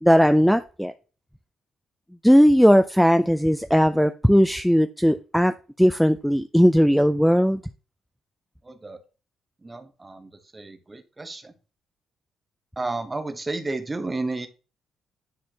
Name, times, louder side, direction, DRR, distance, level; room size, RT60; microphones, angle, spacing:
voice 1, 0.0-0.9 2.2-7.6, equal, ahead, 9 dB, 0.4 m, -18 dB
voice 2, 8.6-9.0 9.6-11.5 12.8-14.5, right 2 dB, 20° right, 8 dB, 1.0 m, -32 dB
10.0 x 4.2 x 2.8 m, 0.34 s
cardioid pair, 90°, 0 cm